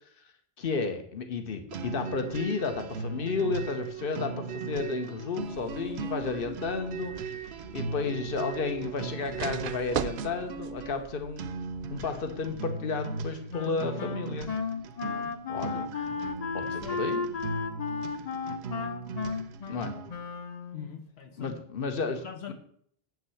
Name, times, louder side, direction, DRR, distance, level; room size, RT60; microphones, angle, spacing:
voice 1, 0.6-7.1 7.7-11.5 11.9-14.5 15.5-15.9 16.5-17.3 19.7-19.9 21.4-22.2 22.5-22.6, left 4 dB, 60° left, 7 dB, 1.3 m, -32 dB
sound 1, 1.7-20.2, right 4 dB, 90° right, 1.0 m, -38 dB
sound 2, 5.4-12.6, right 9 dB, 60° right, 0.7 m, -41 dB
Wind instrument woodwind instrument, 13.5-20.9, left 5 dB, 40° left, 0.8 m, -34 dB
voice 2, 16.5-17.0 19.2-19.4 20.7-21.6 22.2-22.5, left 7 dB, 90° left, 6 dB, 1.3 m, -44 dB
7.7 x 6.3 x 7.0 m, 0.64 s
omnidirectional pair, 1.1 m